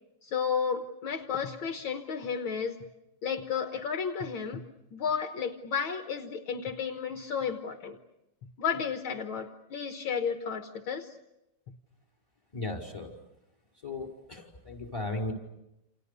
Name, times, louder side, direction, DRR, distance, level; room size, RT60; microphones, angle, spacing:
voice 1, 0.2-2.8 3.2-4.6 4.9-8.0 8.6-11.1, left 6 dB, 70° left, 6 dB, 2.1 m, -32 dB
voice 2, 12.5-13.1 13.8-15.3, left 2 dB, 15° left, 2 dB, 5.3 m, -36 dB
29.0 x 29.0 x 6.9 m, 0.88 s
omnidirectional pair, 2.4 m